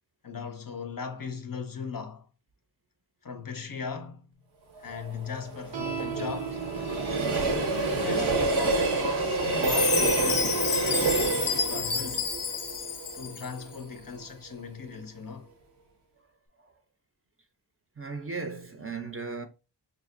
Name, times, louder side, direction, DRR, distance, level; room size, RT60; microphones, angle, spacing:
voice 1, 0.2-2.3 3.2-4.3 4.8-6.6 7.4-12.3 13.1-15.5, left 5 dB, 50° left, 0.5 m, -38 dB
Train, 4.8-13.8 14.2-14.3, right 3 dB, 90° right, 1.0 m, -28 dB
sound 1, 5.7-12.4, right 6 dB, 70° right, 0.7 m, -40 dB
Chime, 9.6-13.6, left 7 dB, 90° left, 0.6 m, -29 dB
voice 2, 18.0-19.5, right 4 dB, 30° right, 0.5 m, -36 dB
5.0 x 2.5 x 2.5 m
wide cardioid pair, 65°, 46 cm